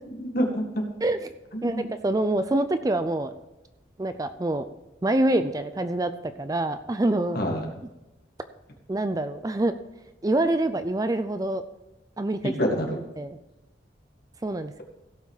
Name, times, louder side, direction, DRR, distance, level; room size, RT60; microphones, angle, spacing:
voice 1, 0.1-0.9 1.5-1.8 7.3-7.7 12.6-13.0, equal, 50° left, 2 dB, 2.0 m, -27 dB
voice 2, 1.6-3.3 4.0-4.6 5.0-6.1 6.4-7.4 8.9-9.7 10.2-11.6 12.2-12.5 13.2-13.4 14.4-14.8, right 1 dB, 20° right, 10 dB, 0.4 m, -25 dB
16.0 x 5.9 x 4.9 m, 0.99 s
head